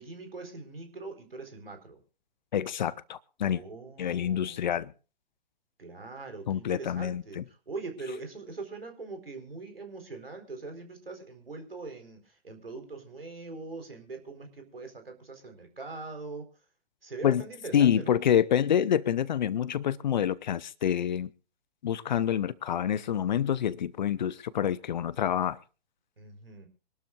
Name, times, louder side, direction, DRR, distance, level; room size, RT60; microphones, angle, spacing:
voice 1, 0.0-2.0 3.4-4.6 5.8-16.5 17.0-18.1 26.2-26.7, right 3 dB, 75° right, 4.4 m, -42 dB
voice 2, 2.5-3.6 4.0-4.9 6.5-7.4 17.2-17.4 17.7-21.3 21.8-25.6, left 9 dB, 50° left, 0.9 m, -27 dB
25.5 x 12.5 x 2.5 m
figure-of-eight pair, 120°, 29 cm